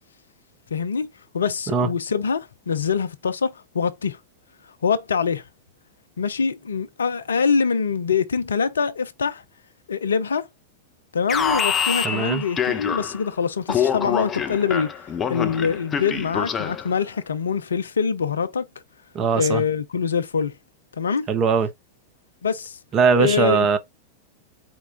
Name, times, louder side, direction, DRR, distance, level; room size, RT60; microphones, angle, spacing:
voice 1, 0.7-1.1 1.3-4.2 4.8-5.4 6.2-9.4 9.9-10.5 11.1-14.9 15.3-18.6 19.4-20.5 21.0-21.3 22.4-22.8 23.2-23.7, left 6 dB, 70° left, 0.6 m, -24 dB
Alarm, 11.3-13.3 13.7-16.9, left 7 dB, 20° left, 0.6 m, -25 dB
voice 2, 12.0-12.4 19.1-19.6 21.3-21.7 22.9-23.8, right 6 dB, 30° right, 0.9 m, -20 dB
4.6 x 2.2 x 3.7 m
figure-of-eight pair, 90°, 0 cm